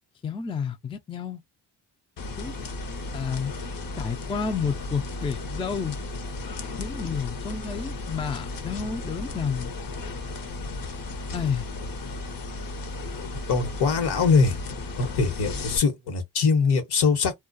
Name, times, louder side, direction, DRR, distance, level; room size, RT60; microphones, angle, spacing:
voice 1, 0.2-1.4 2.4-2.5 3.1-3.5 4.0-6.0 6.8-9.7 11.3-11.7, left 6 dB, 15° left, 0.3 m, -30 dB
sound 1, 2.2-15.8, left 3 dB, 55° left, 0.8 m, -35 dB
voice 2, 13.5-14.6 15.1-17.3, left 5 dB, 75° left, 1.1 m, -22 dB
2.3 x 2.2 x 2.5 m
cardioid pair, 95°, 40 cm